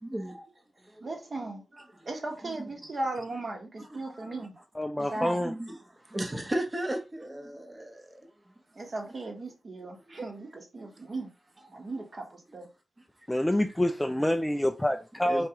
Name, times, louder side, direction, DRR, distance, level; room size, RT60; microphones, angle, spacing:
voice 1, 0.0-0.4 0.7-1.1 1.7-2.1 2.4-2.9 3.8-4.5 5.0-8.9 9.9-10.2 10.8-10.9 13.2-13.5 14.0-14.2 15.2-15.5, right 1 dB, 20° right, 0.9 m, -38 dB
voice 2, 1.0-1.6 2.0-4.5 5.0-5.4 8.7-11.3 11.7-12.7, right 2 dB, 40° right, 1.1 m, -37 dB
voice 3, 4.8-5.5 13.3-15.5, left 1 dB, 5° left, 0.3 m, -27 dB
4.6 x 3.5 x 2.9 m
wide cardioid pair, 150°, 0 cm